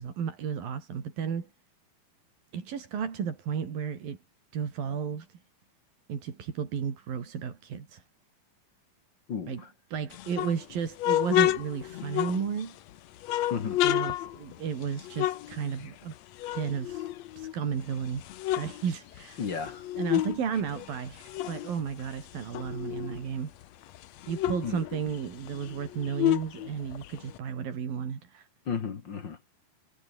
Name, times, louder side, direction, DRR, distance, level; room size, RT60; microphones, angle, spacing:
voice 1, 0.0-1.5 2.5-4.2 4.5-5.4 6.1-8.0 9.5-9.6 9.9-12.8 13.8-16.1 16.5-17.1 17.4-18.2 18.6-19.4 20.0-23.5 24.3-28.5, right 7 dB, 85° right, 5.2 m, -33 dB
voice 2, 9.3-9.7 13.5-13.8 19.4-19.9 24.6-24.8 28.7-29.5, left 6 dB, 40° left, 1.9 m, -34 dB
sound 1, 10.1-12.8 13.2-16.1 16.4-17.7 18.1-20.4 20.7-23.2 23.6-23.7 23.9-27.4, left 14 dB, 65° left, 1.8 m, -30 dB
omnidirectional pair, 4.0 m